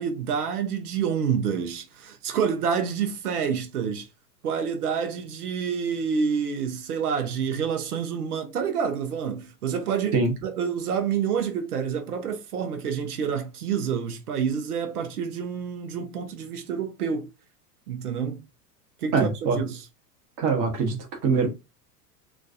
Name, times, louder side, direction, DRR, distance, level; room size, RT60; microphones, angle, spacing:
voice 1, 0.0-4.1 4.4-10.2 10.4-17.3 17.9-18.4 19.0-19.8, right 7 dB, 65° right, 0.9 m, -28 dB
voice 2, 19.1-19.6 20.4-21.5, right 4 dB, 40° right, 1.2 m, -23 dB
3.1 x 2.4 x 2.6 m
figure-of-eight pair, 90°, 48 cm